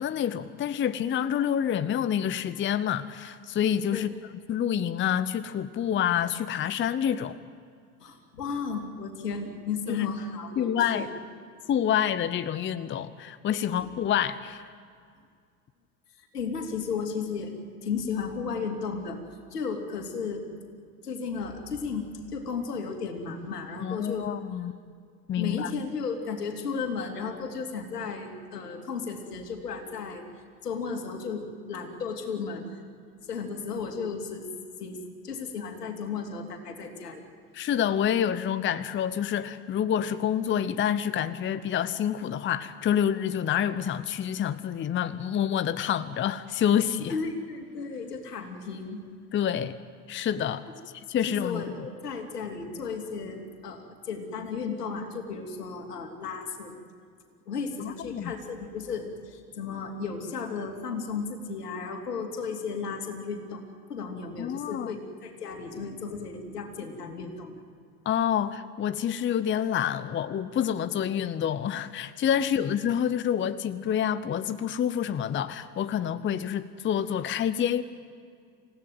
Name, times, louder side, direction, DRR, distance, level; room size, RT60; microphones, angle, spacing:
voice 1, 0.0-4.1 4.5-7.4 9.9-10.1 10.6-11.1 11.7-14.6 23.8-24.7 25.3-25.7 37.5-47.1 49.3-49.8 50.1-50.7 51.1-51.6 57.8-58.3 64.4-64.9 68.0-77.8, left 9 dB, 25° left, 14 dB, 0.8 m, -27 dB
voice 2, 8.0-11.1 13.7-13.9 16.2-19.2 19.5-20.4 21.0-24.3 25.4-30.2 30.6-32.7 33.3-34.5 34.8-35.0 35.2-37.2 47.1-49.0 51.3-56.8 57.5-63.6 63.9-67.5 72.4-72.6, left 5 dB, 80° left, 4 dB, 3.0 m, -34 dB
28.0 x 16.5 x 9.2 m, 2.2 s
figure-of-eight pair, 75°, 46 cm